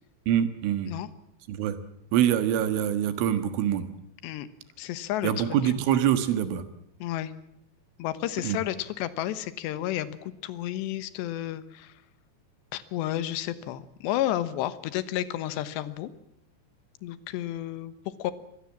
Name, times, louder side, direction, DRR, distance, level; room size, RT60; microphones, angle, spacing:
voice 1, 0.3-0.9 1.5-1.8 2.1-3.9 5.2-6.6 8.4-8.6, right 10 dB, 80° right, 11 dB, 4.0 m, -25 dB
voice 2, 4.8-5.7 7.0-7.3 8.0-11.9 12.7-16.1 17.0-17.9 18.2-18.3, left 13 dB, 70° left, 14 dB, 3.1 m, -31 dB
25.0 x 21.0 x 7.4 m, 0.75 s
omnidirectional pair, 5.6 m